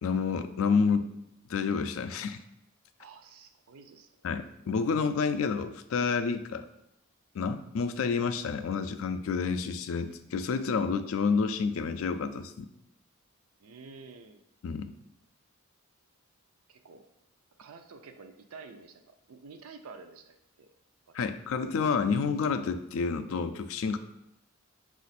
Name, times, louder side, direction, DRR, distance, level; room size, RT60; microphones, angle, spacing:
voice 1, 0.0-1.1 1.5-2.4 4.2-6.7 7.3-12.7 14.6-14.9 21.1-24.0, left 5 dB, 65° left, 10 dB, 0.3 m, -29 dB
voice 2, 3.0-4.1 13.6-14.4 16.7-17.1 17.6-20.7 21.1-21.2, right 4 dB, 75° right, 7 dB, 0.5 m, -50 dB
5.0 x 2.5 x 4.1 m, 0.80 s
head